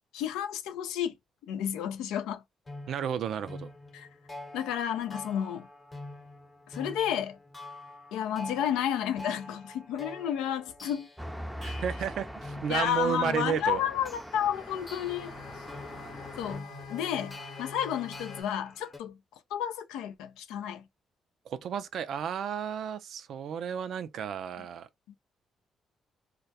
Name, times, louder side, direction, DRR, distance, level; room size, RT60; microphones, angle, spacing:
voice 1, 0.1-1.1 1.5-2.4 3.9-4.1 4.5-5.7 6.7-7.4 8.1-11.1 12.7-15.3 16.4-19.1 19.5-20.8, left 9 dB, 85° left, 0.3 m, -31 dB
sound 1, 2.7-19.0, left 2 dB, 30° left, 0.8 m, -46 dB
voice 2, 2.9-3.7 11.6-13.8 21.5-24.9, right 8 dB, 70° right, 0.3 m, -32 dB
Traffic noise roadway noise, 11.2-16.6, equal, ahead, 0.5 m, -42 dB
sound 2, 14.5-18.4, left 5 dB, 70° left, 0.8 m, -45 dB
2.2 x 2.1 x 2.7 m
supercardioid pair, 60°, 0 cm